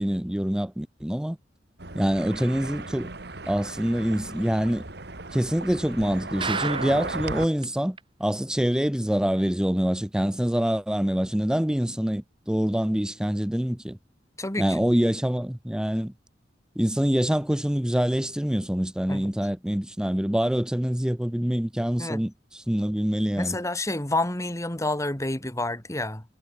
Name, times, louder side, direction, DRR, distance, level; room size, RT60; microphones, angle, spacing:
voice 1, 0.0-1.4 1.9-3.1 3.5-4.8 5.3-14.0 14.6-16.1 16.8-23.6, equal, 5° right, 0.5 m, -25 dB
sound 1, 1.8-7.5, right 3 dB, 65° right, 2.7 m, -36 dB
sound 2, 6.4-7.3 7.6-7.7 8.0-8.1 8.5-8.6, right 5 dB, 30° right, 3.9 m, -31 dB
voice 2, 14.4-14.8 19.1-19.3 22.0-22.2 23.4-26.2, left 2 dB, 20° left, 3.3 m, -29 dB
head